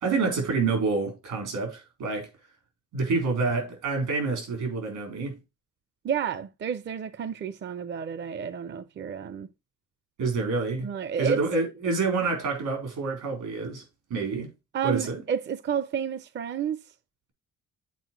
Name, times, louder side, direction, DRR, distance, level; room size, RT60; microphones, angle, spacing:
voice 1, 0.0-2.3 2.9-5.4 10.2-10.9 11.2-13.8 14.1-14.5 14.8-15.2, right 4 dB, 85° right, 4.1 m, -27 dB
voice 2, 6.0-9.5 10.8-11.4 14.7-16.8, right 8 dB, 40° right, 0.5 m, -30 dB
8.3 x 4.4 x 4.4 m
cardioid pair, 90°, 30 cm